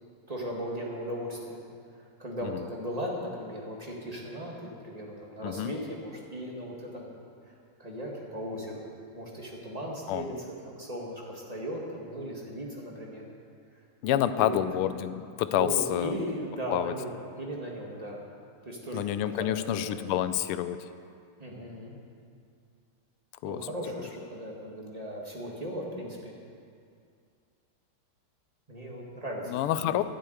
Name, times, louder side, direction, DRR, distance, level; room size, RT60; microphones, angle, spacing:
voice 1, 0.3-1.6 2.2-7.1 7.8-8.9 9.1-10.3 10.6-13.2 14.1-14.6 15.5-18.2 18.6-20.0 21.4-21.9 23.4-26.3 28.7-30.0, equal, 20° right, -2 dB, 1.7 m, -37 dB
voice 2, 10.1-10.4 14.0-16.1 16.7-16.9 18.9-20.8 23.4-23.7 29.5-30.0, left 12 dB, 85° left, 12 dB, 1.5 m, -28 dB
12.0 x 7.1 x 9.4 m, 2.3 s
omnidirectional pair, 2.4 m